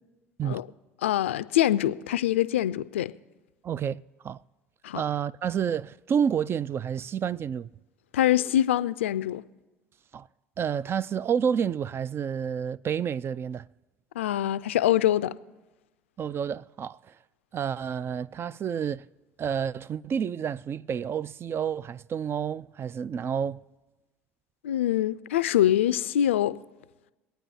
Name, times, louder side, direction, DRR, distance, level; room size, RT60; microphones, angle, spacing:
voice 1, 1.0-3.1 4.8-5.0 8.1-9.4 14.2-15.4 24.6-26.6, left 12 dB, 85° left, 0.4 m, -24 dB
voice 2, 3.6-4.4 4.9-7.7 10.1-10.3 10.6-13.7 16.2-17.2 17.5-19.1 19.4-23.6, right 8 dB, 40° right, 0.3 m, -29 dB
23.5 x 9.1 x 2.8 m
hypercardioid pair, 65°, 7 cm